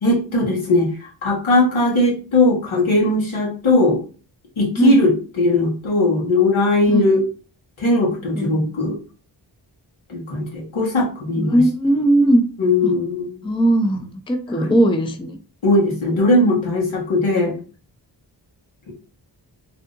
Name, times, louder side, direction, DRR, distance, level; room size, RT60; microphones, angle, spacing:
voice 1, 0.0-4.0 4.6-5.1 5.4-7.2 7.8-9.0 10.1-11.6 12.6-13.4 14.5-14.7 15.6-17.5 18.9-19.0, left 2 dB, 80° left, -3 dB, 1.4 m, -19 dB
voice 2, 8.3-8.9 11.4-12.4 12.8-12.9 13.4-15.4, right 1 dB, 10° left, 7 dB, 0.4 m, -19 dB
3.4 x 2.7 x 2.5 m, 0.38 s
cardioid pair, 50°, 47 cm